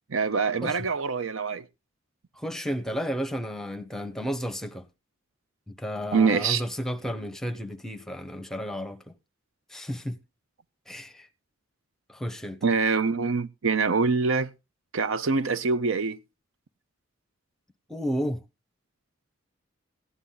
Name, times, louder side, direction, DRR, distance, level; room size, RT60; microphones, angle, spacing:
voice 1, 0.1-1.6 6.1-6.6 12.6-14.5 14.9-16.2, right 4 dB, 80° right, 0.6 m, -24 dB
voice 2, 2.4-4.9 5.7-9.1 9.7-10.2 10.9-11.3 12.1-12.6 17.9-18.4, equal, ahead, 0.7 m, -32 dB
15.5 x 9.8 x 3.9 m
head